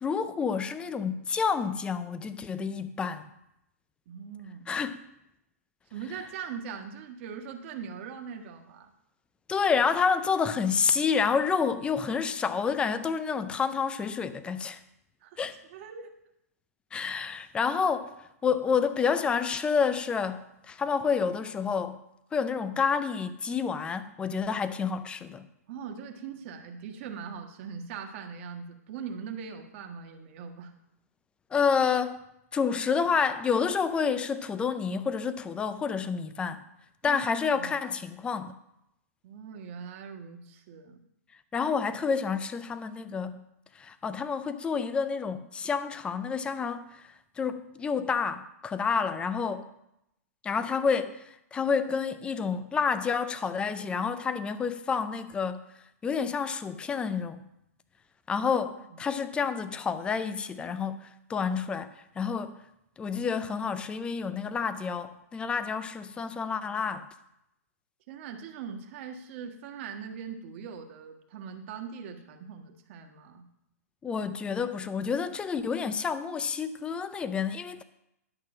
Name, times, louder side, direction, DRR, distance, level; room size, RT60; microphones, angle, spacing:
voice 1, 0.0-3.3 4.7-5.0 9.5-14.8 15.4-15.6 16.9-22.0 22.3-25.5 31.5-32.2 32.5-36.6 37.0-38.5 41.5-43.4 43.7-49.7 50.4-55.6 56.0-57.4 58.3-62.6 63.0-67.1 74.0-77.8, left 6 dB, 10° left, 0.5 m, -29 dB
voice 2, 4.1-4.7 5.9-8.9 15.2-15.4 15.7-16.1 25.7-30.7 37.0-37.7 39.2-41.0 58.4-58.5 58.9-59.0 68.1-73.4, right 6 dB, 45° right, 1.5 m, -41 dB
11.0 x 5.9 x 6.1 m
hypercardioid pair, 135°, 9 cm